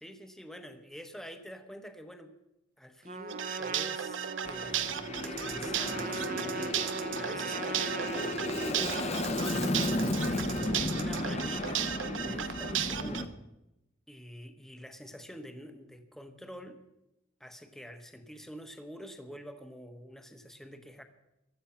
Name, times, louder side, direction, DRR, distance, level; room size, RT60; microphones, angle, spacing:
voice 1, 0.0-2.4 2.8-9.6 10.3-13.4 14.1-16.8 17.4-21.0, equal, ahead, 7 dB, 1.1 m, -47 dB
Trumpet, 3.1-11.7, right 4 dB, 45° right, 1.0 m, -41 dB
sound 1, 3.3-13.2, right 9 dB, 80° right, 0.8 m, -35 dB
Aircraft, 4.4-13.3, left 2 dB, 35° left, 0.9 m, -34 dB
16.0 x 11.5 x 5.7 m, 0.89 s
head